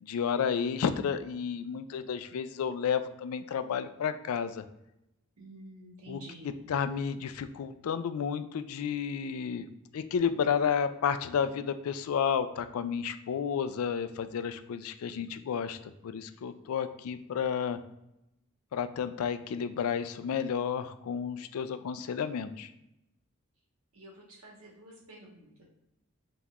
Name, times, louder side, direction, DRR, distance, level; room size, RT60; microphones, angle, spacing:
voice 1, 0.0-4.6 6.1-9.7 9.9-17.8 18.7-22.7, left 7 dB, 80° left, 12 dB, 0.3 m, -31 dB
voice 2, 5.4-6.5 23.9-24.1 24.4-25.6, right 1 dB, 80° right, -2 dB, 1.3 m, -49 dB
5.3 x 2.8 x 2.4 m, 0.88 s
head